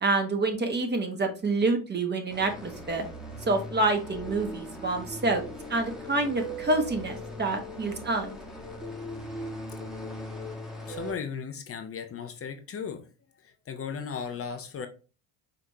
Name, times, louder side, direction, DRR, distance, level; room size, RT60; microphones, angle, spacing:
voice 1, 0.0-3.0 3.5-5.4 5.7-8.4, right 2 dB, 30° right, 1.2 m, -27 dB
sound 1, 2.3-11.1, equal, ahead, 1.2 m, -39 dB
voice 2, 10.9-13.1 13.4-14.9, left 6 dB, 40° left, 0.8 m, -36 dB
5.1 x 3.4 x 2.7 m
supercardioid pair, 95°, 36 cm